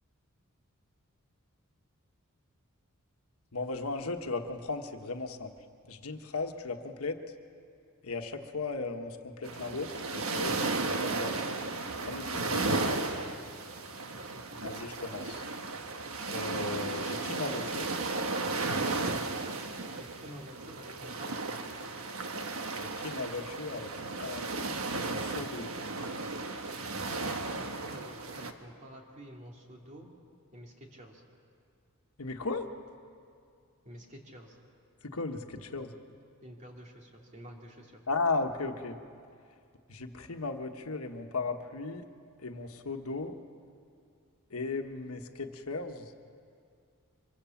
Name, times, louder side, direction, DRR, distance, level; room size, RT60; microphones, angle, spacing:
voice 1, 3.5-5.5 5.8-7.2 8.0-11.4 12.0-13.0 14.6-15.4 16.3-17.9 22.8-25.7 32.2-32.7 35.0-35.9 38.1-39.0 39.9-42.0 42.4-43.4 44.5-46.1, left 3 dB, 80° left, 5 dB, 1.3 m, -36 dB
sound 1, 9.4-28.5, right 3 dB, 70° right, 1.4 m, -34 dB
voice 2, 14.1-15.3 20.0-21.6 27.6-30.1 30.5-31.2 33.8-34.6 36.4-38.0, equal, 35° right, 0 dB, 2.8 m, -50 dB
24.5 x 23.0 x 7.2 m, 2.3 s
head